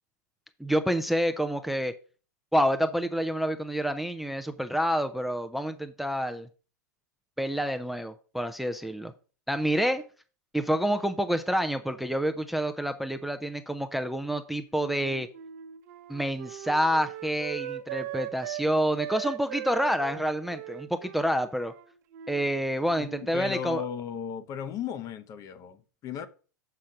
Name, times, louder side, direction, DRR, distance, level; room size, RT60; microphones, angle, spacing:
voice 1, 0.6-1.9 2.5-6.5 7.4-9.1 9.5-10.0 10.5-15.3 16.1-21.7 22.3-23.8, equal, ahead, 0.5 m, -28 dB
Wind instrument woodwind instrument, 14.8-18.7 19.0-22.5 22.8-23.3, right 13 dB, 55° right, 0.8 m, -39 dB
voice 2, 23.0-26.3, left 7 dB, 35° left, 0.8 m, -36 dB
6.3 x 5.8 x 4.9 m
hypercardioid pair, 105°, 10 cm